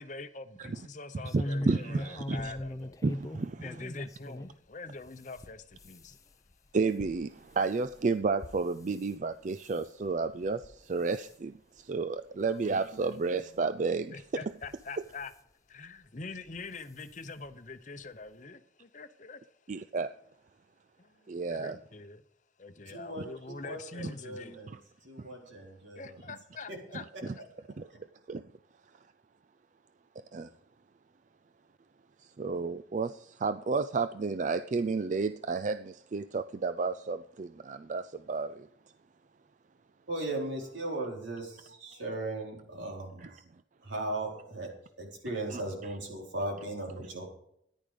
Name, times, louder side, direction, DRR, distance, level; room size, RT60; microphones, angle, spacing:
voice 1, 0.0-3.0 3.6-6.4 12.4-13.4 14.1-15.3 15.7-19.8 21.0-22.2 22.6-24.6 25.9-27.4, left 3 dB, 40° left, 0.8 m, -45 dB
sound 1, 1.2-4.6 5.0-9.1 9.5-9.9 10.4-10.8 11.0-11.3 12.0-12.1 12.4-12.5 13.6-13.7 14.5-15.3 16.5-16.7 17.0-17.1 17.4-17.5, left 1 dB, 20° left, 0.4 m, -40 dB
voice 2, 1.3-2.5 3.0-3.6 6.7-14.2 19.7-20.1 21.3-21.8 23.2-23.3 25.2-25.3 27.8-27.9 28.3-28.4 30.3-30.5 32.4-38.7 45.5-45.6, right 4 dB, 40° right, 0.4 m, -31 dB
voice 3, 22.9-24.7 25.0-26.1 26.7-26.8 27.6-28.0 40.1-43.4 43.8-47.2, right 2 dB, 80° right, 4.1 m, -38 dB
14.0 x 10.5 x 5.1 m
head